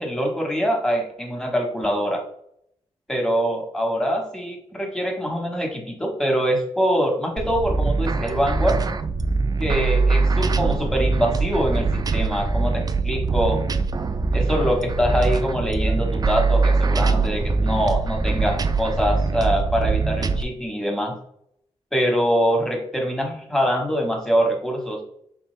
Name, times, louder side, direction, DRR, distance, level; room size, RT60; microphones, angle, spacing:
voice 1, 0.0-2.2 3.1-8.8 9.6-13.6 14.3-21.2 21.9-25.0, equal, 5° left, 1 dB, 1.3 m, -24 dB
sound 1, 7.4-20.4, right 4 dB, 35° right, 0.4 m, -22 dB
4.4 x 3.5 x 3.3 m, 0.70 s
cardioid pair, 85°, 11 cm